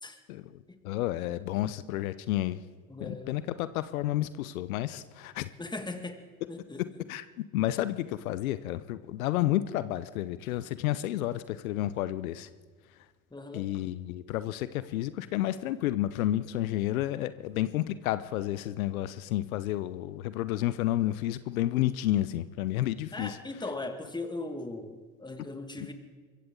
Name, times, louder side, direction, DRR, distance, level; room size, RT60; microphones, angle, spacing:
voice 1, 0.3-2.6 3.0-5.5 7.1-12.5 13.5-23.4, left 14 dB, 80° left, 15 dB, 0.8 m, -31 dB
voice 2, 2.9-3.4 5.6-6.2 6.5-6.8 13.3-13.7 23.1-25.9, left 2 dB, 10° left, 6 dB, 2.0 m, -39 dB
23.5 x 15.5 x 3.9 m, 1.5 s
hypercardioid pair, 80°, 42 cm